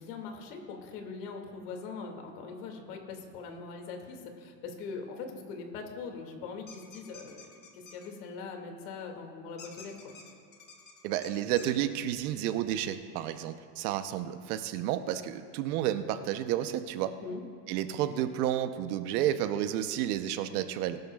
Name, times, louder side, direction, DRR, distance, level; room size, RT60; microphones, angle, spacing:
voice 1, 0.0-7.4 7.7-10.1 17.2-17.4, left 4 dB, 75° left, 3 dB, 2.4 m, -41 dB
sound 1, 6.7-8.1 9.6-11.7, left 4 dB, 20° left, 1.1 m, -50 dB
voice 2, 11.0-17.1 17.7-21.0, right 11 dB, 70° right, 10 dB, 0.9 m, -31 dB
21.0 x 12.0 x 2.4 m, 2.2 s
supercardioid pair, 155°, 47 cm